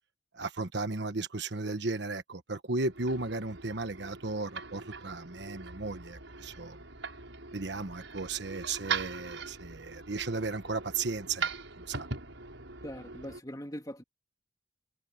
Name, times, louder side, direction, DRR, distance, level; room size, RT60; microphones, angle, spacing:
voice 1, 0.3-6.8 7.5-11.5 11.8-12.1, right 3 dB, 60° right, 1.3 m, -35 dB
sound 1, 2.8-13.4, right 5 dB, 75° right, 6.0 m, -41 dB
voice 2, 12.8-14.0, equal, 20° left, 3.0 m, -41 dB
head